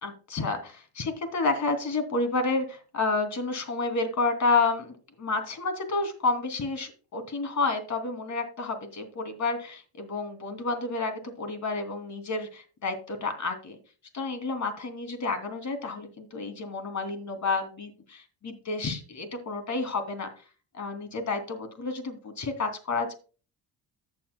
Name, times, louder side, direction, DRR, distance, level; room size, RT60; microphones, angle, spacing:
voice 1, 0.0-13.8 14.1-20.3 20.7-23.1, left 3 dB, 40° left, 7 dB, 2.9 m, -30 dB
14.5 x 8.5 x 2.2 m, 0.36 s
cardioid pair, 105°, 43 cm